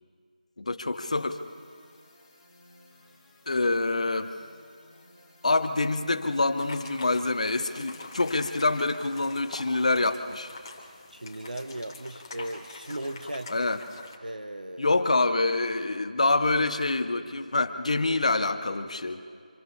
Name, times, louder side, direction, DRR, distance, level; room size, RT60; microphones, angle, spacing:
voice 1, 0.6-1.4 3.5-4.3 5.4-10.5 13.5-13.8 14.8-19.2, left 2 dB, 55° left, 9 dB, 1.2 m, -26 dB
sound 1, 0.9-8.9, left 1 dB, 5° left, 6.7 m, -58 dB
sound 2, 6.6-14.2, left 3 dB, 30° left, 1.9 m, -45 dB
voice 2, 11.1-13.5 14.2-15.0, right 1 dB, 80° right, 8 dB, 1.0 m, -37 dB
29.5 x 26.0 x 3.3 m, 2.1 s
figure-of-eight pair, 165°, 4 cm